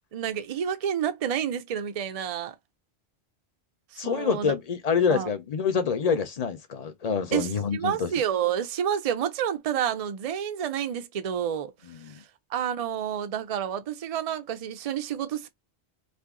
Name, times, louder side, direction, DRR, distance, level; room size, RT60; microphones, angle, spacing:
voice 1, 0.1-2.5 3.9-4.5 5.1-5.3 7.3-11.7 12.1-12.2 12.5-15.5, right 9 dB, 50° right, 0.4 m, -29 dB
voice 2, 4.0-8.1 11.8-12.2, left 6 dB, 40° left, 0.7 m, -27 dB
2.7 x 2.5 x 3.6 m
omnidirectional pair, 1.1 m